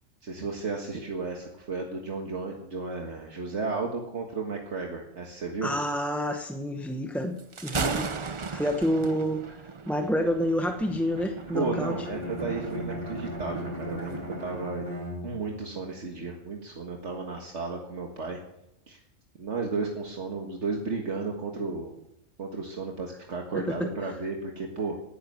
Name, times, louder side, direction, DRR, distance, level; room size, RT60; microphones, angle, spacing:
voice 1, 0.2-5.7 11.5-14.9 15.2-18.4 18.9-19.0 19.4-22.0 22.4-25.0, right 4 dB, 70° right, 1 dB, 1.9 m, -33 dB
voice 2, 5.6-9.6 9.9-11.9 23.5-23.9, equal, ahead, 5 dB, 0.9 m, -29 dB
Thunder, 7.4-14.6, right 4 dB, 30° right, 0.6 m, -37 dB
Bowed string instrument, 11.4-15.7, equal, 55° right, 3.0 m, -36 dB
17.5 x 10.0 x 6.6 m, 0.82 s
omnidirectional pair, 1.3 m